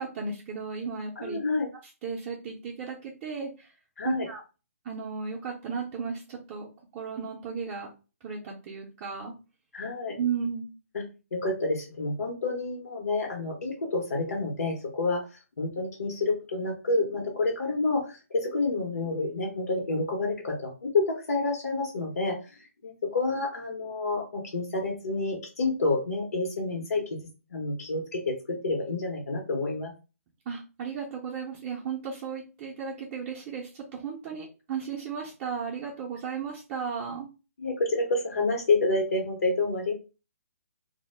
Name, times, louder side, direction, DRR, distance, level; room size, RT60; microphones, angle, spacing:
voice 1, 0.0-1.4 2.0-3.7 4.0-4.4 4.8-6.7 6.9-7.9 8.2-9.3 10.2-10.7 30.5-37.3, right 6 dB, 25° right, -5 dB, 0.5 m, -35 dB
voice 2, 1.2-1.7 4.0-4.3 9.7-10.2 11.3-27.2 27.5-29.9 37.6-39.9, left 3 dB, 75° left, 1 dB, 0.8 m, -29 dB
2.1 x 2.0 x 3.2 m, 0.32 s
hypercardioid pair, 150°, 8 cm